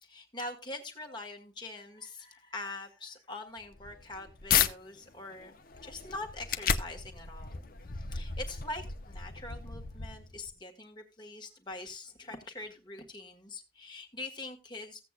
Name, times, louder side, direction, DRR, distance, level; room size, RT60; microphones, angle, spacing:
voice 1, 0.0-5.5 5.8-7.6 7.9-15.0, left 2 dB, 25° left, 1.6 m, -43 dB
sound 1, 3.6-4.7 5.2-10.5, left 8 dB, 50° left, 0.8 m, -34 dB
15.5 x 8.2 x 2.3 m
head